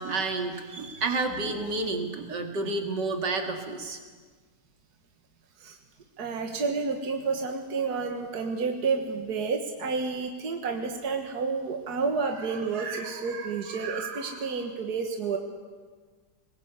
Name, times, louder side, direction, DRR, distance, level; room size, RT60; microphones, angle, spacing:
voice 1, 0.0-4.0, right 3 dB, 85° right, 4 dB, 2.8 m, -30 dB
voice 2, 6.2-15.4, right 4 dB, 65° right, 3 dB, 2.1 m, -30 dB
22.0 x 20.5 x 8.3 m, 1.5 s
omnidirectional pair, 1.8 m